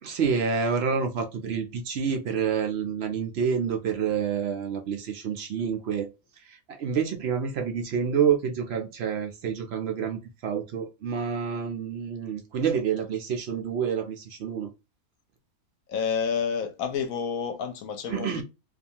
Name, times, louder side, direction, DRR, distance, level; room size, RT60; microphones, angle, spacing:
voice 1, 0.0-6.1 6.4-14.7 18.1-18.4, right 7 dB, 70° right, 0.6 m, -28 dB
voice 2, 15.9-18.4, left 6 dB, 70° left, 1.0 m, -29 dB
2.6 x 2.3 x 2.7 m
omnidirectional pair, 1.7 m